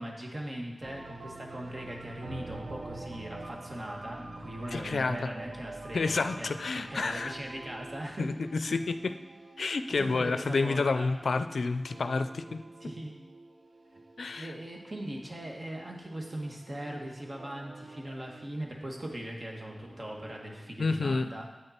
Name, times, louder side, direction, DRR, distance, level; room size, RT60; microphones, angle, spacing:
voice 1, 0.0-8.3 8.6-8.7 10.0-11.1 12.8-13.1 14.3-21.5, right 1 dB, 50° right, 0 dB, 1.7 m, -40 dB
sound 1, 0.8-20.7, right 2 dB, 65° right, 0.7 m, -47 dB
voice 2, 4.7-5.3 5.9-7.4 8.2-9.1 9.6-12.6 14.2-14.5 20.8-21.3, left 4 dB, 90° left, 10 dB, 0.4 m, -29 dB
8.8 x 6.7 x 4.3 m, 1.1 s
cardioid pair, 45°, 0 cm